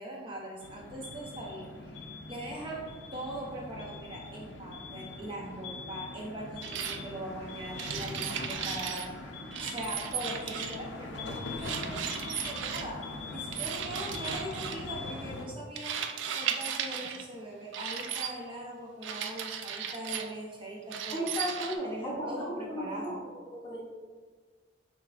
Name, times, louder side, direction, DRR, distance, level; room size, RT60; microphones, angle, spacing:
voice 1, 0.0-13.0 13.3-16.0 16.3-21.3 21.8-23.2, right 1 dB, 25° right, -2 dB, 0.6 m, -41 dB
sound 1, 0.6-15.5, left 3 dB, 70° left, 0.5 m, -42 dB
sound 2, 6.6-7.0 7.8-9.1 9.5-10.9 11.6-12.9 13.5-14.8 15.8-17.2 17.7-18.3 19.0-20.3 20.9-21.8, right 8 dB, 70° right, 0.3 m, -36 dB
voice 2, 21.1-23.2 23.5-23.8, equal, 20° left, -3 dB, 0.6 m, -35 dB
6.0 x 3.3 x 2.4 m, 1.5 s
head